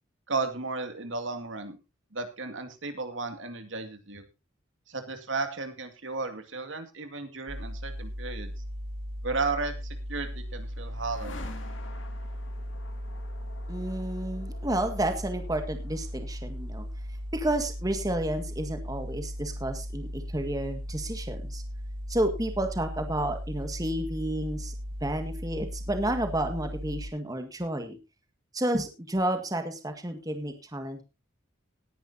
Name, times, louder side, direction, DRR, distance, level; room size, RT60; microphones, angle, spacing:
voice 1, 0.3-1.8 2.1-4.2 4.9-8.5 9.2-9.7 10.1-11.4, right 3 dB, 70° right, 7 dB, 2.3 m, -34 dB
sound 1, 7.5-27.1, equal, 40° right, 6.4 m, -37 dB
sound 2, 9.8-19.8, left 3 dB, 70° left, 3.0 m, -50 dB
voice 2, 13.7-16.9 17.3-21.6 22.1-24.7 25.0-28.0 28.5-31.0, right 1 dB, 20° right, 6 dB, 1.8 m, -31 dB
19.0 x 10.5 x 2.8 m, 0.27 s
head